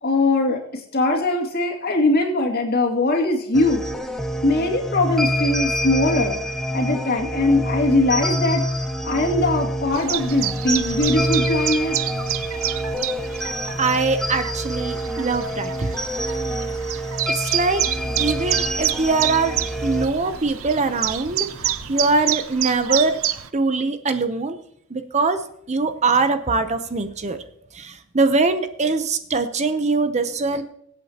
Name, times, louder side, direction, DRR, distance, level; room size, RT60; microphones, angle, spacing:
voice 1, 0.0-3.8 4.4-6.4 6.7-8.6 9.0-12.0, left 2 dB, 50° left, 0 dB, 2.4 m, -21 dB
sound 1, 3.5-20.1, equal, ahead, 0.8 m, -26 dB
Chirp tweet, 9.9-23.5, right 12 dB, 85° right, 0.6 m, -28 dB
voice 2, 13.8-15.9 17.3-17.8 18.2-19.6 19.8-21.5 21.9-23.2 23.5-24.6 24.9-25.4 25.7-27.4 27.7-30.6, right 3 dB, 35° right, 9 dB, 0.7 m, -22 dB
sound 2, 17.8-22.2, equal, 65° right, 4.6 m, -41 dB
22.5 x 8.5 x 2.9 m, 0.71 s
head